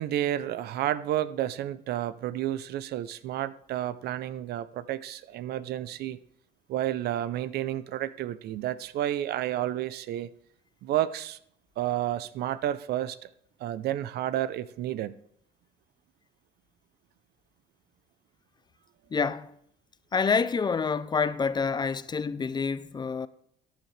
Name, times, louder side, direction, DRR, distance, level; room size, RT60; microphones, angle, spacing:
voice 1, 0.0-6.2 6.7-10.3 10.8-11.4 11.8-13.3 13.6-15.1, right 12 dB, 70° right, 0.6 m, -31 dB
voice 2, 19.1-19.5 20.1-23.3, left 5 dB, 25° left, 0.5 m, -27 dB
13.5 x 10.5 x 3.3 m
cardioid pair, 110°, 17 cm